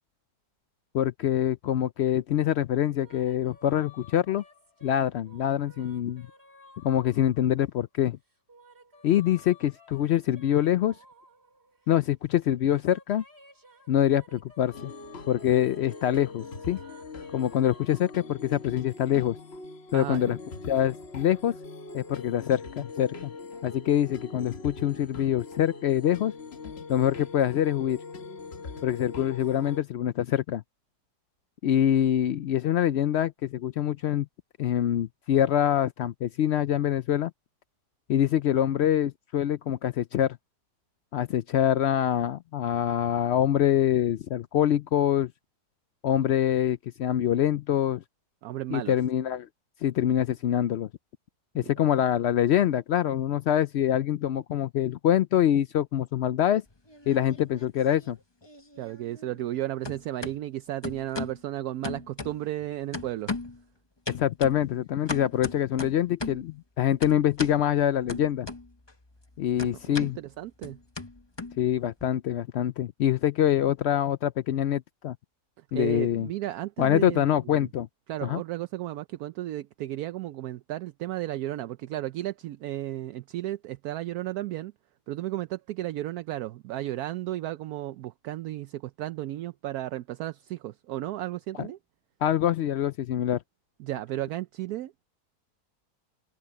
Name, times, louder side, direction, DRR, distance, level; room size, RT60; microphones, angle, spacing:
voice 1, 0.9-4.4 4.8-6.3 6.8-8.2 9.0-10.9 11.9-13.2 13.9-14.9 15.3-16.8 17.3-19.4 19.9-20.4 20.7-21.5 21.9-23.3 23.6-26.3 26.9-28.0 28.8-30.6 31.6-34.3 34.6-37.3 38.1-40.4 41.1-45.3 46.0-48.0 48.7-49.5 49.8-50.9 51.5-56.6 57.1-58.2 64.1-68.5 69.4-70.2 71.6-75.2 75.7-76.3 76.8-77.9 78.2-78.4 91.6-91.7 92.2-93.4, left 11 dB, 85° left, 0.5 m, -25 dB
sound 1, 2.8-7.8 8.3-12.0 12.4-18.3, left 2 dB, 40° right, 4.3 m, -55 dB
sound 2, 14.7-29.8, left 3 dB, 45° left, 1.3 m, -42 dB
voice 2, 19.9-20.3 48.4-49.0 51.5-51.7 58.8-63.3 69.8-70.8 75.7-77.7 78.1-84.7 85.1-91.8 93.8-95.0, right 14 dB, 75° right, 1.0 m, -34 dB
sound 3, 56.7-57.7 58.0-59.6 59.8-60.4 60.8-61.4 61.8-62.6 62.9-63.6 64.1-66.5 67.0-67.6 68.1-68.9 69.2-72.0, left 3 dB, 20° left, 1.1 m, -37 dB
open air
omnidirectional pair, 1.7 m